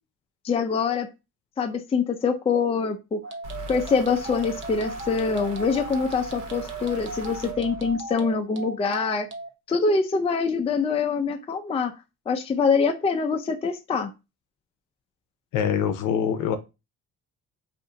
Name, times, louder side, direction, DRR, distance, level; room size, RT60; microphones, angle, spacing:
voice 1, 0.4-1.1 1.6-3.2 3.7-9.3 9.7-11.9 12.3-14.1, left 5 dB, 20° left, 0.4 m, -24 dB
sound 1, 3.2-9.5, right 3 dB, 40° right, 0.6 m, -36 dB
sound 2, 3.4-8.4, equal, 75° right, 1.2 m, -41 dB
voice 2, 15.5-16.6, left 8 dB, 90° left, 0.6 m, -24 dB
2.5 x 2.5 x 3.8 m
cardioid pair, 90°, 30 cm